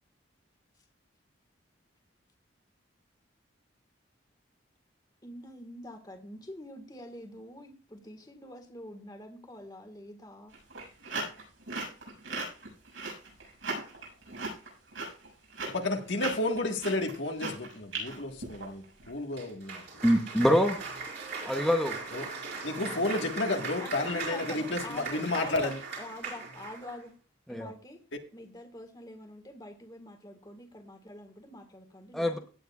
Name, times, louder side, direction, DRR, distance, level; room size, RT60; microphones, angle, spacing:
voice 1, 5.2-10.5 22.7-23.3 23.8-25.7 26.0-27.1 27.5-28.0 28.3-32.4, left 1 dB, 20° left, 1.7 m, -45 dB
sound 1, 10.5-19.1, right 3 dB, 75° right, 6.7 m, -38 dB
voice 2, 15.7-20.0 22.1-22.3 22.6-25.8, left 2 dB, 65° left, 1.6 m, -32 dB
Cheering / Applause, 19.3-27.0, right 4 dB, 55° right, 4.3 m, -39 dB
voice 3, 20.0-20.8 21.4-22.0 27.5-27.7 32.1-32.4, equal, ahead, 0.8 m, -24 dB
17.0 x 9.2 x 2.4 m
head